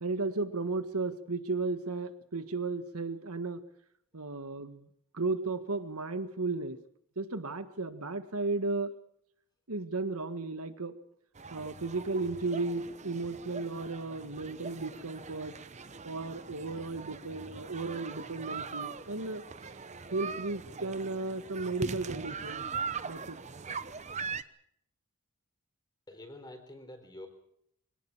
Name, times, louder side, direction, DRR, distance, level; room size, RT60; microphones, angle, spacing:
voice 1, 0.0-3.6 4.1-4.9 5.1-6.8 7.2-8.9 9.7-11.0 11.5-15.5 16.0-19.8 20.1-22.6 23.1-23.4, right 3 dB, 85° right, 10 dB, 1.7 m, -34 dB
sound 1, 11.4-24.4, right 5 dB, 30° right, 0.8 m, -41 dB
voice 2, 26.1-27.3, left 1 dB, 20° left, 6 dB, 4.1 m, -47 dB
24.0 x 18.0 x 7.4 m, 0.72 s
head